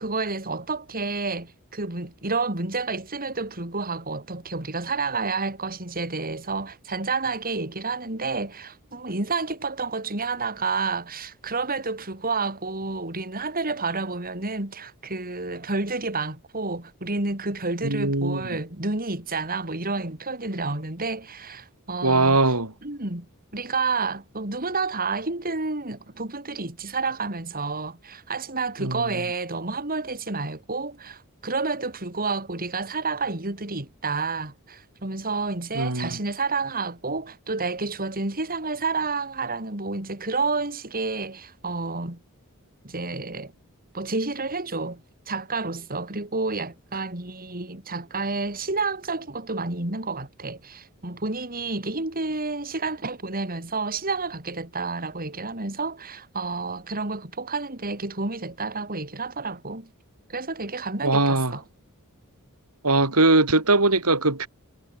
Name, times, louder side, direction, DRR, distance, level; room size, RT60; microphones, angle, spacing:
voice 1, 0.0-22.4 22.8-23.3 23.5-42.2 42.8-43.5 43.9-59.9 60.3-61.6, right 3 dB, 40° right, 4.4 m, -30 dB
voice 2, 17.8-18.6 22.0-22.7 28.8-29.1 35.7-36.2 61.0-61.6 62.8-64.5, right 2 dB, 90° right, 5.8 m, -21 dB
head